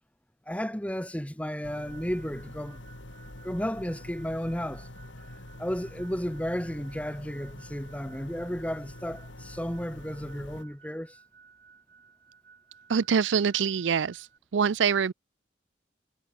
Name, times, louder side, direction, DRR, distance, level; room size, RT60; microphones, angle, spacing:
voice 1, 0.5-2.8 3.4-4.9 5.6-11.2, equal, 5° left, 1.7 m, -33 dB
sound 1, 1.6-10.6, left 1 dB, 85° left, 3.2 m, -46 dB
sound 2, 1.7-14.4, right 5 dB, 50° right, 5.5 m, -57 dB
voice 2, 12.9-14.3 14.5-15.1, right 6 dB, 80° right, 0.5 m, -24 dB
head